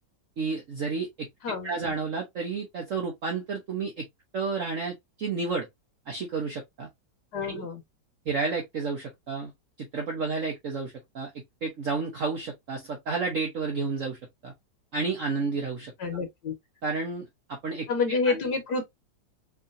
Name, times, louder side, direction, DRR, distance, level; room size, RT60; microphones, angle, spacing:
voice 1, 0.4-1.3 1.6-4.0 4.3-5.7 6.1-6.9 7.4-7.6 8.3-9.5 9.8-14.5 14.9-15.9 16.8-18.5, right 4 dB, 50° right, 1.1 m, -31 dB
voice 2, 1.4-2.0 7.3-7.8 16.0-16.5 17.9-18.8, left 4 dB, 65° left, 1.5 m, -28 dB
4.6 x 2.8 x 2.5 m
omnidirectional pair, 2.0 m